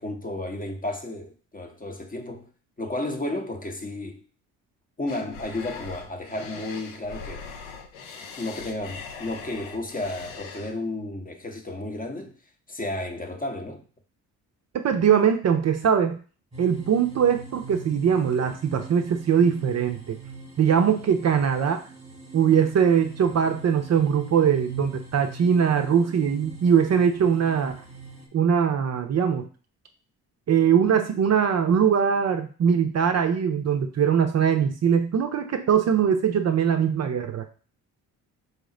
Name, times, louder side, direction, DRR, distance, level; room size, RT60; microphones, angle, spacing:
voice 1, 0.0-2.5 2.8-4.2 5.0-7.5 8.4-12.3 12.7-13.8, left 2 dB, 20° left, 0.8 m, -32 dB
sound 1, 5.1-10.7, left 5 dB, 85° left, 0.6 m, -41 dB
voice 2, 14.8-16.2 16.6-20.2 20.6-21.8 22.3-27.8 28.3-29.5 30.5-37.5, right 7 dB, 40° right, 0.5 m, -21 dB
sound 2, 16.5-28.3, right 3 dB, 15° right, 1.1 m, -43 dB
4.2 x 2.0 x 3.7 m
hypercardioid pair, 50°, 41 cm